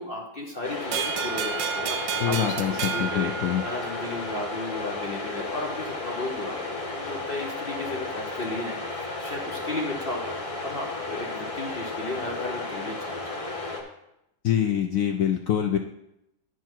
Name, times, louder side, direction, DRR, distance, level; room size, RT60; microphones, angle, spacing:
voice 1, 0.0-3.3 3.6-13.3, left 2 dB, 45° left, 0 dB, 0.8 m, -35 dB
sound 1, 0.6-13.8, left 3 dB, 25° left, 1.0 m, -33 dB
sound 2, 0.9-4.2, right 8 dB, 90° right, 1.3 m, -31 dB
voice 2, 2.2-3.6 14.4-15.8, left 10 dB, 75° left, 4 dB, 0.7 m, -25 dB
11.0 x 4.6 x 4.5 m, 0.84 s
omnidirectional pair, 2.0 m